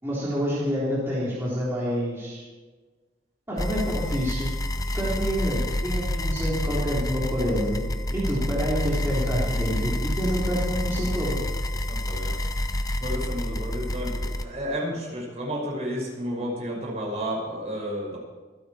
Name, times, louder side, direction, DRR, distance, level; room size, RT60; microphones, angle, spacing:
voice 1, 0.0-2.4 3.5-4.5 4.9-7.8 8.1-11.4, equal, 15° right, -9 dB, 3.7 m, -27 dB
sound 1, 3.6-14.4, left 1 dB, 20° left, 0.8 m, -28 dB
voice 2, 11.9-12.3 13.0-18.2, equal, 35° right, -3 dB, 5.9 m, -31 dB
26.0 x 9.7 x 4.4 m, 1.4 s
head